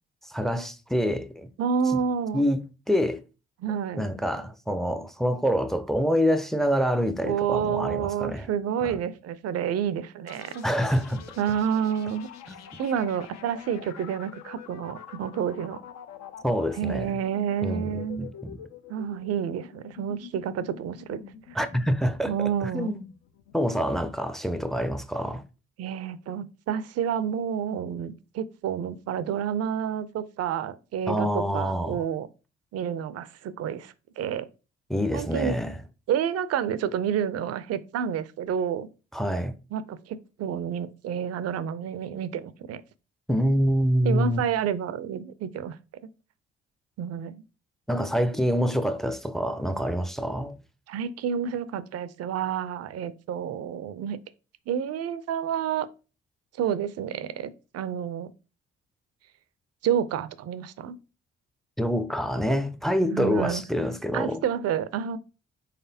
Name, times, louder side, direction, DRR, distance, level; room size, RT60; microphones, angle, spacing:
voice 1, 0.3-1.5 2.3-3.2 4.0-8.5 8.8-8.9 10.6-11.2 12.5-12.6 16.4-17.1 17.6-18.6 21.5-22.3 22.7-23.0 23.5-25.4 31.1-32.0 34.9-35.8 39.1-39.5 43.3-44.4 47.9-50.6 61.8-64.4, equal, ahead, 0.5 m, -26 dB
voice 2, 1.6-2.4 3.6-4.0 7.2-10.7 11.4-12.3 12.8-15.8 16.7-18.3 18.9-21.2 22.3-22.9 25.8-32.3 32.7-34.5 35.1-35.5 36.1-38.9 39.7-42.8 44.0-45.8 47.0-47.4 50.9-54.2 54.7-55.9 56.6-58.3 59.8-61.0 63.1-63.6 64.1-65.2, right 8 dB, 60° right, 0.5 m, -29 dB
sound 1, 10.3-23.9, left 9 dB, 65° left, 0.6 m, -46 dB
4.1 x 3.2 x 2.7 m
hypercardioid pair, 45°, 29 cm